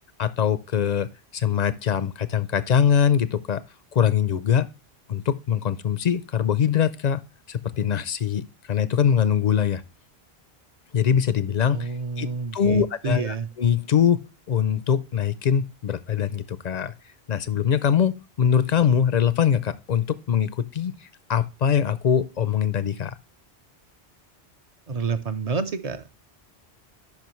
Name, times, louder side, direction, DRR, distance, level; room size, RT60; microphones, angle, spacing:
voice 1, 0.2-3.6 3.9-4.7 5.1-7.2 7.5-9.8 10.9-12.3 12.5-16.9 17.3-23.2, left 8 dB, 55° left, 0.5 m, -23 dB
voice 2, 11.7-13.5 24.9-26.1, right 5 dB, 40° right, 0.7 m, -29 dB
10.5 x 5.2 x 3.1 m
omnidirectional pair, 1.1 m